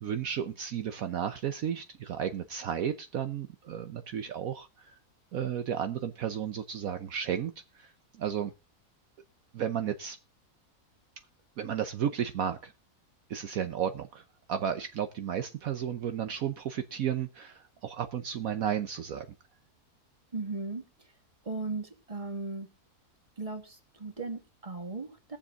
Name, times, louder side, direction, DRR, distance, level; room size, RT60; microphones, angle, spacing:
voice 1, 0.0-5.0 5.3-8.5 9.5-10.2 11.6-12.7 13.3-19.3, right 9 dB, 65° right, 8 dB, 1.2 m, -33 dB
voice 2, 20.3-20.9 21.5-22.7 23.4-25.4, right 3 dB, 20° right, 5 dB, 2.0 m, -37 dB
21.5 x 7.2 x 2.5 m, 0.28 s
omnidirectional pair, 1.6 m